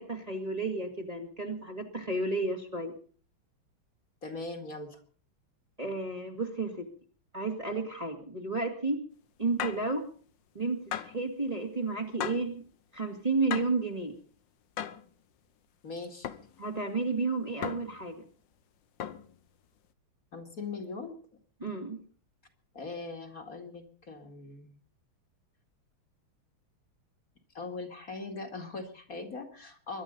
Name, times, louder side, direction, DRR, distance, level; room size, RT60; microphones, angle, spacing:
voice 1, 0.0-2.9 5.8-6.9 7.3-9.0 9.4-10.1 10.5-12.6 12.9-14.1 16.6-18.2 21.6-22.0, right 3 dB, 20° right, 2 dB, 2.1 m, -32 dB
voice 2, 4.2-5.0 15.8-16.3 20.3-21.2 22.7-24.7 27.5-30.0, left 3 dB, 45° left, 3 dB, 2.6 m, -40 dB
sound 1, 9.6-9.9 10.9-11.2 12.2-12.5 13.5-13.8 14.8-15.1 16.2-16.5 17.6-18.0 19.0-19.3, left 9 dB, 65° left, 1.6 m, -36 dB
22.5 x 11.5 x 5.4 m, 0.43 s
omnidirectional pair, 2.3 m